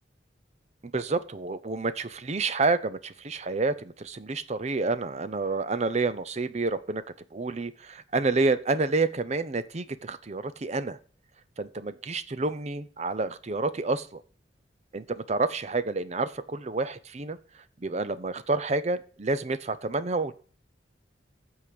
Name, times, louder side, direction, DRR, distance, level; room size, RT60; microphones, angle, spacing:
voice 1, 0.9-7.0 7.3-11.0 11.6-14.2 14.9-17.4 17.8-20.3, right 3 dB, 35° right, 14 dB, 0.6 m, -29 dB
14.5 x 4.8 x 5.1 m, 0.44 s
head